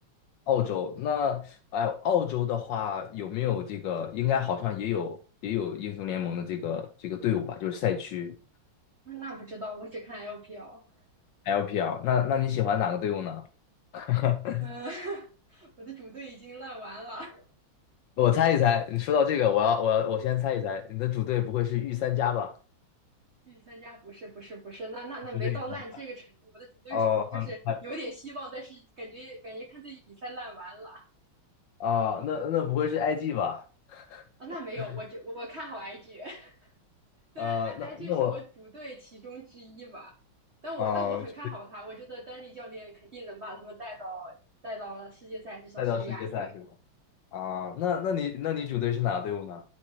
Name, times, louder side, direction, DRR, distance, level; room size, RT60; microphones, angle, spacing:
voice 1, 0.5-5.2 5.4-8.4 11.5-13.4 13.9-14.7 18.2-22.5 25.3-25.6 26.9-27.8 31.8-33.6 33.9-34.2 37.4-38.4 40.8-41.2 45.8-46.6 47.3-49.6, left 9 dB, 70° left, 1.2 m, -28 dB
voice 2, 9.0-10.8 14.6-17.5 23.4-27.0 27.3-31.1 34.4-36.7 37.3-40.1 40.6-44.3 44.6-46.6, right 1 dB, 45° right, 0.9 m, -41 dB
11.0 x 4.2 x 3.0 m
omnidirectional pair, 2.4 m